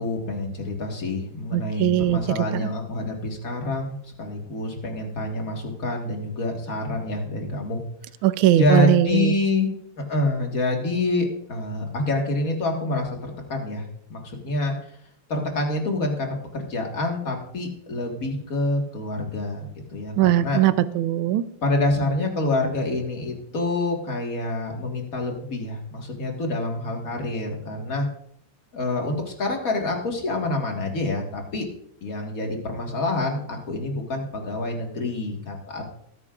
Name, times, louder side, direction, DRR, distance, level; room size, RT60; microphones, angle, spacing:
voice 1, 0.0-7.8 8.5-9.7 10.0-14.7 15.3-20.6 21.6-28.1 28.7-31.7 32.0-35.9, left 2 dB, 40° left, 2 dB, 2.0 m, -27 dB
voice 2, 1.5-2.7 8.2-9.3 20.2-21.4, right 13 dB, 75° right, 13 dB, 1.4 m, -20 dB
19.5 x 9.7 x 2.5 m, 0.71 s
omnidirectional pair, 2.4 m